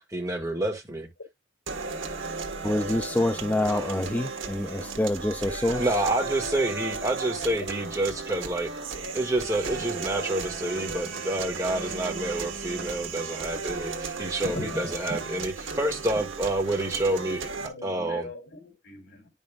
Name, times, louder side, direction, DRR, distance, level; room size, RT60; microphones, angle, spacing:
voice 1, 0.1-1.1 5.8-8.7 9.1-18.3, right 1 dB, 15° right, 1.6 m, -28 dB
sound 1, 1.7-17.7, right 4 dB, 90° right, 1.3 m, -35 dB
voice 2, 2.6-5.9, left 1 dB, 10° left, 0.3 m, -26 dB
voice 3, 14.5-14.9 17.5-19.3, left 2 dB, 70° left, 3.1 m, -39 dB
10.0 x 5.5 x 2.3 m
head